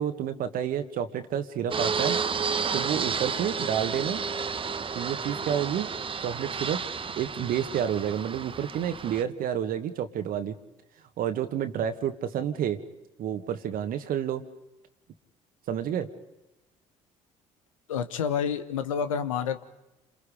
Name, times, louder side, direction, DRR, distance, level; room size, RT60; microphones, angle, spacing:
voice 1, 0.0-2.2 2.7-4.2 4.9-5.9 6.2-6.8 7.2-10.6 11.2-12.8 13.2-14.4 15.7-16.1, right 9 dB, 60° right, 8 dB, 1.6 m, -29 dB
Fixed-wing aircraft airplane, 1.7-9.2, right 5 dB, 30° right, 1.1 m, -31 dB
voice 2, 17.9-19.6, left 7 dB, 85° left, 10 dB, 1.2 m, -29 dB
29.0 x 27.5 x 5.1 m, 0.96 s
hypercardioid pair, 55°, 17 cm